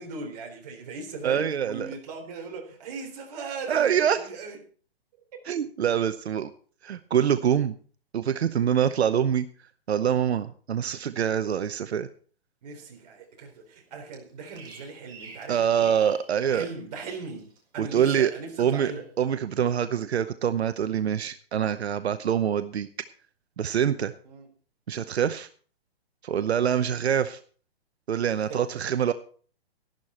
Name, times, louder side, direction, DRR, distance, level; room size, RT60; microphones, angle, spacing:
voice 1, 0.0-4.6 5.3-5.4 12.6-15.9 16.5-19.1 24.3-24.5 28.5-28.8, right 4 dB, 40° right, 3.7 m, -39 dB
voice 2, 1.2-1.9 3.7-4.3 5.5-6.5 6.8-7.8 8.1-9.5 9.9-12.1 15.5-16.7 17.8-18.3 18.6-22.9 23.6-24.1 24.9-25.5 26.2-27.4 28.1-29.1, right 8 dB, 85° right, 0.9 m, -25 dB
Bird vocalization bird call bird song, 14.1-16.7 17.0-17.6 17.9-18.4 18.7-19.0, right 3 dB, 15° right, 1.7 m, -49 dB
12.5 x 11.5 x 4.3 m
hypercardioid pair, 165°, 32 cm